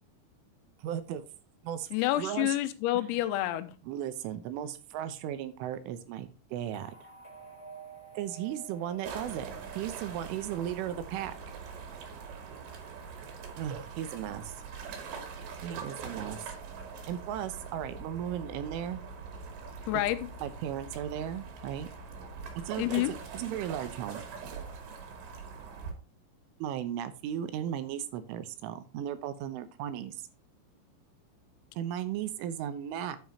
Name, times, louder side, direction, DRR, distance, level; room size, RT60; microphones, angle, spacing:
voice 1, 0.8-1.2 1.6-1.9 2.2-2.6 2.9-3.1 3.8-6.9 8.1-9.5 9.8-11.5 13.6-14.5 15.6-16.4 17.1-19.0 20.4-21.9 22.6-24.2 26.6-30.2 31.8-33.2, right 10 dB, 80° right, 11 dB, 3.3 m, -36 dB
voice 2, 1.9-3.7 19.9-20.3 22.8-23.1, left 15 dB, 85° left, 11 dB, 3.7 m, -28 dB
sound 1, 6.7-11.0, right 6 dB, 20° left, 3.0 m, -50 dB
sound 2, 9.0-25.9, right 5 dB, 60° right, 4.3 m, -43 dB
10.5 x 9.6 x 2.9 m, 0.33 s
omnidirectional pair, 6.0 m